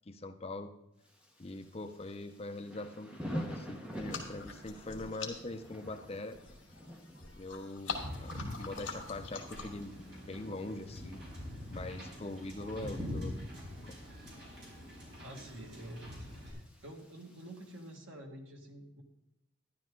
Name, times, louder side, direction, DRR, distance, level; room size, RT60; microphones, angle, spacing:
voice 1, 0.1-0.7 1.4-6.4 7.4-11.2 11.7-13.4 13.8-14.0, left 2 dB, 30° left, 6 dB, 0.6 m, -42 dB
Thunder / Rain, 1.0-17.9, equal, 5° right, 1.1 m, -49 dB
sound 1, 3.9-9.9, left 4 dB, 65° left, 2.2 m, -45 dB
Wind / Boat Water vehicle, 7.9-16.5, left 1 dB, 55° right, 4.7 m, -44 dB
voice 2, 15.2-16.1 16.5-19.0, right 1 dB, 70° right, 2 dB, 1.9 m, -48 dB
12.0 x 11.0 x 3.8 m, 0.86 s
head